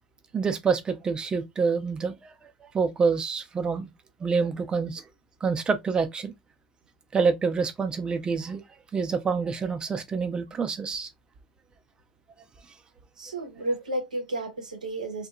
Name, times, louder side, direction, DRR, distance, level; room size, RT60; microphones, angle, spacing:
voice 1, 0.3-2.3 2.6-3.9 4.2-5.0 5.4-6.3 7.1-8.6 8.9-11.1, right 5 dB, 20° right, 0.5 m, -27 dB
voice 2, 13.2-15.3, right 1 dB, 80° right, 0.7 m, -32 dB
2.7 x 2.2 x 2.3 m
figure-of-eight pair, 80°, 4 cm